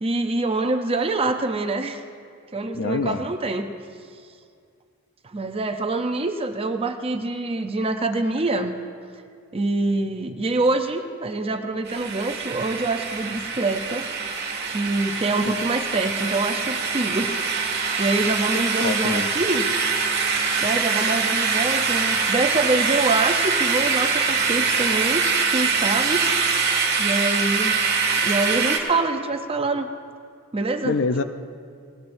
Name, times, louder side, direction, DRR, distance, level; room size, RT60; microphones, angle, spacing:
voice 1, 0.0-2.0 2.5-3.7 5.2-8.8 9.5-14.1 14.6-19.7 20.6-26.3 26.9-27.7 28.1-29.9 30.5-31.0, right 2 dB, 25° right, 6 dB, 0.6 m, -25 dB
voice 2, 2.7-3.3 15.4-15.5 18.8-19.3 30.8-31.2, left 4 dB, 55° left, 9 dB, 0.6 m, -25 dB
sound 1, 11.9-28.8, right 5 dB, 50° right, 1.6 m, -24 dB
18.0 x 18.0 x 2.6 m, 2.3 s
head